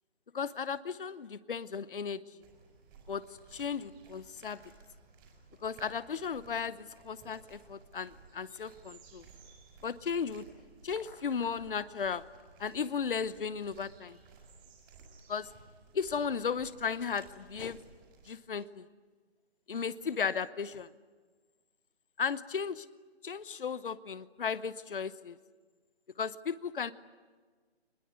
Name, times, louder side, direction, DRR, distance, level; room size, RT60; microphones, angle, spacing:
voice 1, 0.3-2.4 3.1-3.2 3.5-4.6 5.6-9.2 9.8-10.4 10.8-12.2 12.6-14.2 15.3-15.5 15.9-17.8 18.3-18.9 19.7-20.9 22.2-22.9 23.2-25.4 26.2-26.9, left 6 dB, 55° left, 16 dB, 0.9 m, -35 dB
sound 1, 2.4-18.3, right 4 dB, 20° right, 5.5 m, -57 dB
25.0 x 21.0 x 9.5 m, 1.5 s
figure-of-eight pair, 155°, 32 cm